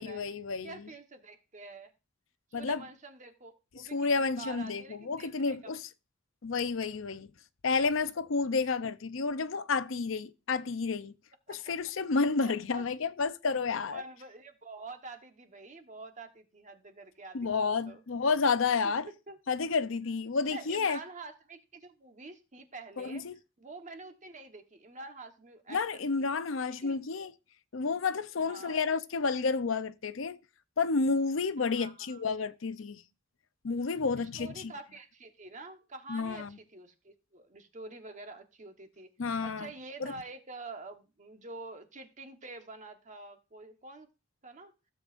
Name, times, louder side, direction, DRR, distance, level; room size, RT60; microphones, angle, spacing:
voice 1, 0.0-0.7 2.5-2.8 3.9-5.8 6.4-7.3 7.6-11.1 11.5-14.0 17.3-19.1 19.5-21.0 23.0-23.4 25.7-27.3 27.7-30.4 30.8-33.0 33.6-34.7 36.1-36.6 39.2-39.7 40.0-40.1, left 4 dB, 80° left, 0.6 m, -30 dB
voice 2, 0.6-1.9 2.5-5.8 11.5-11.8 12.4-12.9 13.9-18.0 18.8-19.4 20.5-23.2 23.6-26.3 26.8-27.0 28.4-28.8 31.6-32.2 34.2-44.1 44.4-44.7, right 3 dB, 40° right, 1.2 m, -47 dB
16.0 x 7.8 x 2.5 m
head